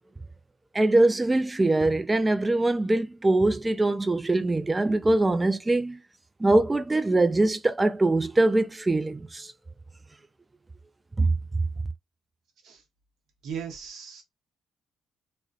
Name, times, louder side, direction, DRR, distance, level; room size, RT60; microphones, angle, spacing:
voice 1, 0.7-6.0 6.4-9.5 11.2-11.3, right 2 dB, 20° right, 0.3 m, -23 dB
voice 2, 13.4-14.2, right 7 dB, 80° right, 0.7 m, -37 dB
2.5 x 2.1 x 2.3 m
cardioid pair, 90°, 0 cm